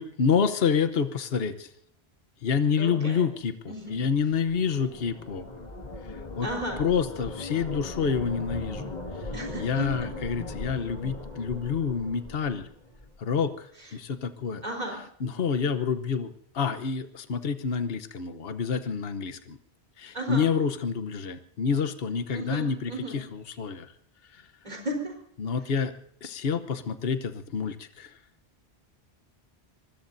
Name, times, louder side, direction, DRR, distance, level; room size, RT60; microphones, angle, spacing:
voice 1, 0.0-1.7 2.4-5.5 6.1-6.5 6.8-8.9 9.2-9.3 9.6-12.7 13.2-14.6 15.2-19.6 20.0-23.9 24.3-24.4 25.4-25.9 26.2-28.2, left 6 dB, 65° left, 11 dB, 1.2 m, -28 dB
voice 2, 2.8-3.3 3.7-4.0 6.4-6.8 9.3-10.1 14.6-15.0 20.1-20.5 22.3-23.2 24.6-25.1, right 1 dB, 40° right, 1 dB, 4.2 m, -34 dB
sound 1, 4.0-13.2, left 2 dB, 40° left, 2.2 m, -39 dB
25.5 x 20.5 x 2.7 m, 0.64 s
omnidirectional pair, 1.1 m